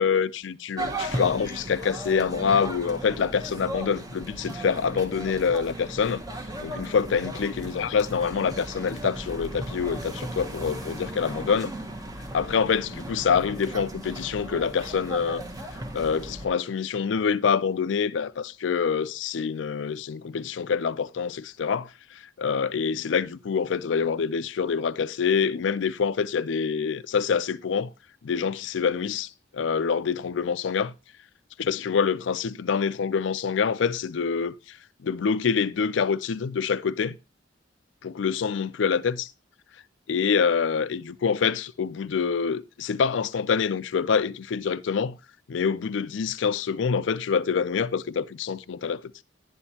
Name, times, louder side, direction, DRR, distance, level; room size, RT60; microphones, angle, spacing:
voice 1, 0.0-6.2 6.6-11.7 12.3-15.4 15.9-27.9 28.2-30.9 31.6-34.8 35.0-37.2 38.0-39.3 40.1-45.2 45.5-49.2, left 6 dB, 75° left, 0.4 m, -26 dB
sound 1, 0.8-16.5, right 1 dB, 20° right, 0.9 m, -36 dB
11.0 x 9.7 x 2.8 m
head